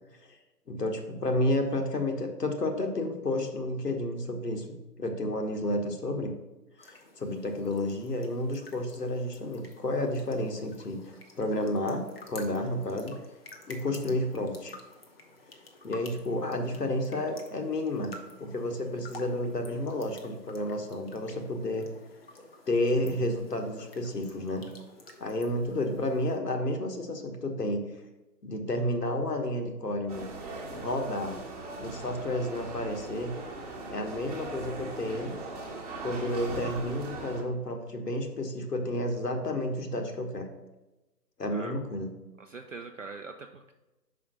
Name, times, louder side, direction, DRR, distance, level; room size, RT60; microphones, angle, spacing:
voice 1, 0.7-6.3 6.8-13.2 13.7-14.7 15.8-18.1 18.4-21.9 22.7-24.7 25.2-27.8 28.4-30.3 30.7-31.4 31.8-33.4 33.9-35.3 36.0-40.5 41.4-42.1, left 1 dB, 70° left, 4 dB, 1.5 m, -31 dB
sound 1, 6.8-26.4, left 2 dB, 35° left, 1.0 m, -51 dB
sound 2, 30.1-37.4, right 3 dB, 25° right, 1.2 m, -40 dB
voice 2, 42.4-43.7, right 3 dB, 50° right, 5 dB, 0.5 m, -43 dB
5.2 x 5.0 x 6.1 m, 1.1 s
figure-of-eight pair, 145°, 49 cm